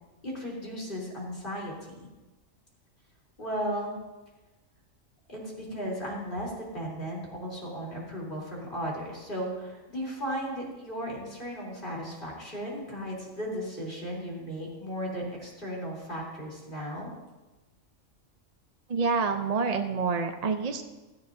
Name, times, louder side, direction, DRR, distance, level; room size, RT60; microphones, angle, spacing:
voice 1, 0.2-2.1 3.4-3.9 5.3-17.1, equal, 40° left, -3 dB, 3.7 m, -35 dB
voice 2, 18.9-20.8, right 4 dB, 40° right, 5 dB, 0.6 m, -27 dB
16.5 x 13.5 x 2.7 m, 1.1 s
omnidirectional pair, 1.4 m